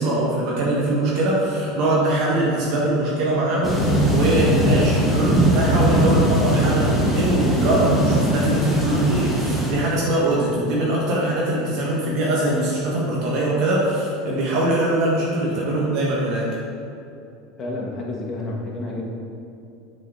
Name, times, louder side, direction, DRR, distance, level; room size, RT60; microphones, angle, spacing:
voice 1, 0.0-16.4, right 1 dB, 60° right, -5 dB, 1.4 m, -22 dB
sound 1, 3.6-9.7, right 1 dB, 5° left, 1.6 m, -20 dB
voice 2, 17.6-19.1, left 2 dB, 35° left, -2 dB, 1.6 m, -30 dB
6.3 x 4.7 x 4.8 m, 2.7 s
supercardioid pair, 110°, 0 cm